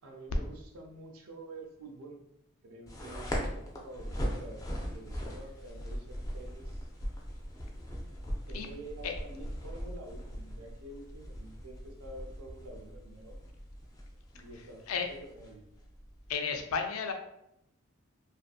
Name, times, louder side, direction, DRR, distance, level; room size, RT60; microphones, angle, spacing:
voice 1, 0.0-2.2 2.6-6.9 8.5-13.4 14.3-15.6, right 2 dB, 85° right, 2 dB, 0.5 m, -48 dB
sound 1, 2.9-16.3, equal, 15° left, 0.3 m, -40 dB
voice 2, 16.3-17.1, left 5 dB, 85° left, 5 dB, 0.4 m, -32 dB
2.5 x 2.4 x 2.3 m, 0.80 s
head